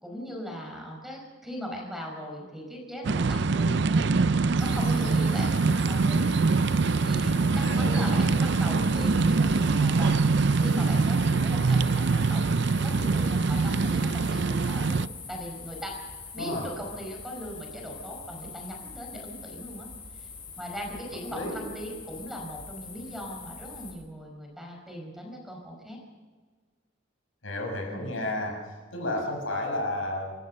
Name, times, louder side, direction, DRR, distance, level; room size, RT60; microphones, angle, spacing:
voice 1, 0.0-4.2 4.6-6.3 7.0-10.2 10.5-12.5 12.8-15.0 15.3-16.0 16.3-19.9 20.1-20.3 20.6-26.0 27.9-28.1, equal, ahead, 0 dB, 5.2 m, -39 dB
sound 1, 3.0-15.1, right 4 dB, 60° right, 0.5 m, -24 dB
sound 2, 4.6-23.9, left 5 dB, 30° left, 7.6 m, -44 dB
voice 2, 7.6-8.4 16.4-16.7 21.3-21.6 27.4-28.6 28.9-30.3, left 1 dB, 85° left, 2 dB, 6.4 m, -32 dB
27.5 x 14.5 x 6.7 m, 1.5 s
head